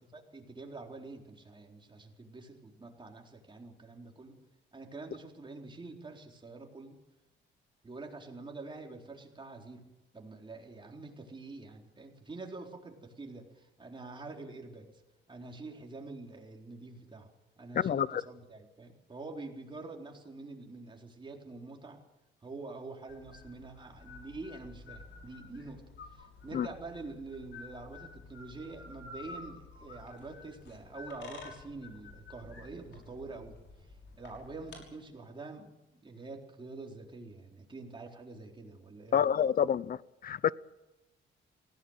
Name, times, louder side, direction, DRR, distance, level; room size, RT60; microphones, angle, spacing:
voice 1, 0.1-4.4 4.7-7.0 7.8-9.8 10.1-15.0 15.3-17.3 17.6-22.0 22.4-25.8 26.1-33.6 34.2-35.7 36.0-39.3, right 3 dB, 25° right, 4.1 m, -46 dB
voice 2, 17.7-18.2 26.5-26.7 39.1-40.5, left 8 dB, 45° left, 0.6 m, -28 dB
sound 1, 23.1-34.8, left 3 dB, 65° left, 6.2 m, -51 dB
19.0 x 16.5 x 9.0 m
cardioid pair, 90°, 20 cm